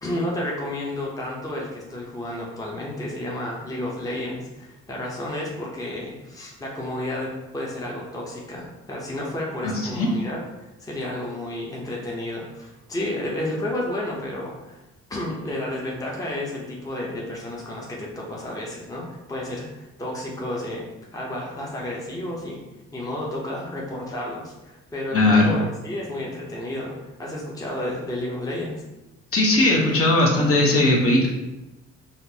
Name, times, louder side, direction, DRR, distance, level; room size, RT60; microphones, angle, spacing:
voice 1, 0.0-10.4 10.8-14.8 15.1-20.8 21.1-22.6 22.9-28.8, left 1 dB, 10° left, -3 dB, 0.7 m, -31 dB
voice 2, 9.6-10.1 25.1-25.6 29.3-31.3, left 2 dB, 50° left, -3 dB, 0.9 m, -18 dB
4.2 x 2.0 x 2.7 m, 1.0 s
cardioid pair, 90°, 30 cm